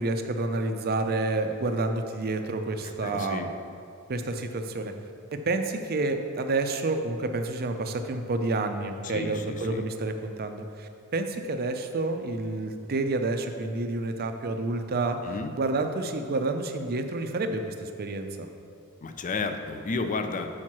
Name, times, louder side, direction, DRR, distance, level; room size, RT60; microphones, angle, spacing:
voice 1, 0.0-3.5 4.1-4.9 5.3-18.5, right 2 dB, 45° right, 7 dB, 0.5 m, -29 dB
voice 2, 2.8-3.5 9.0-9.9 15.2-15.5 19.0-20.5, left 4 dB, 35° left, 7 dB, 0.5 m, -32 dB
6.4 x 4.5 x 6.0 m, 2.6 s
head